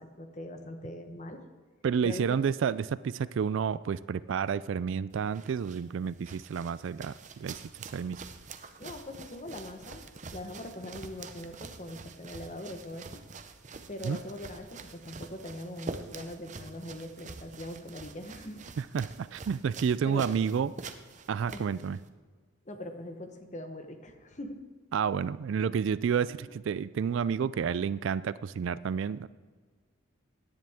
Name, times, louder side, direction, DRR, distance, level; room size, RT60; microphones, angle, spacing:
voice 1, 0.0-1.4 2.0-2.4 8.8-10.0 10.3-13.2 13.9-18.6 20.0-20.3 21.5-21.7 22.7-24.6 26.3-26.5, left 1 dB, 35° left, 6 dB, 1.1 m, -42 dB
voice 2, 1.8-7.6 7.9-8.2 14.0-14.2 18.8-20.7 21.3-22.0 24.9-29.3, right 7 dB, 65° right, 17 dB, 0.3 m, -30 dB
sound 1, 5.1-22.1, right 4 dB, 35° right, 0.7 m, -46 dB
17.0 x 10.0 x 3.6 m, 1.5 s
head